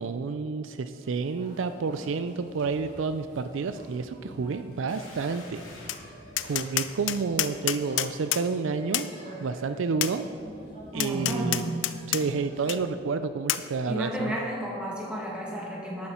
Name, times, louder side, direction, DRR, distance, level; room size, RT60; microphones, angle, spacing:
voice 1, 0.0-5.6 6.4-9.1 9.4-10.3 10.9-11.8 12.1-14.4, right 4 dB, 80° right, 11 dB, 0.4 m, -30 dB
sound 1, 0.9-12.8, right 1 dB, 40° right, 2.7 m, -49 dB
sound 2, 4.9-6.0 6.4-6.8, left 2 dB, 85° left, 2.6 m, -47 dB
Tap, 5.9-6.0 6.4-8.4 8.9-9.1 10.0-10.1 11.0-12.2 12.7-12.8 13.5-13.6, left 13 dB, 70° left, 0.4 m, -28 dB
voice 2, 10.9-11.7 13.9-16.1, equal, 5° right, -4 dB, 1.9 m, -32 dB
12.5 x 8.7 x 4.4 m, 2.5 s
head